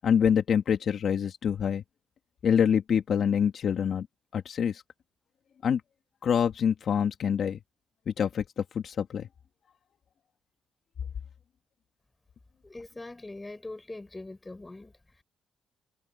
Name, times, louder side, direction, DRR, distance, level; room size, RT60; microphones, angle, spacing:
voice 1, 0.0-1.8 2.4-4.1 4.3-4.8 5.6-5.8 6.2-7.6 8.1-9.3, left 8 dB, 60° left, 2.0 m, -26 dB
voice 2, 12.6-15.2, left 2 dB, 15° left, 5.0 m, -42 dB
cardioid pair, 90°, 0 cm